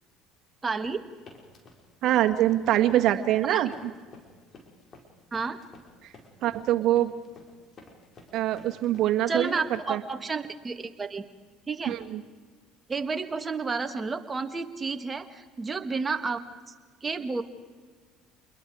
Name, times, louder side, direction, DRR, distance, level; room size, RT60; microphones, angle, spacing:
voice 1, 0.6-1.0 3.5-3.6 5.3-5.6 9.3-11.2 11.7-12.0 12.9-16.7 17.0-17.4, right 4 dB, 25° right, 7 dB, 2.0 m, -31 dB
sound 1, 0.8-9.8, left 3 dB, 45° left, 5.3 m, -52 dB
voice 2, 2.0-3.9 6.4-7.1 8.3-9.6 9.9-10.0 11.9-12.2, right 13 dB, 60° right, 6 dB, 1.8 m, -24 dB
28.5 x 22.0 x 5.0 m, 1.5 s
supercardioid pair, 80°, 0 cm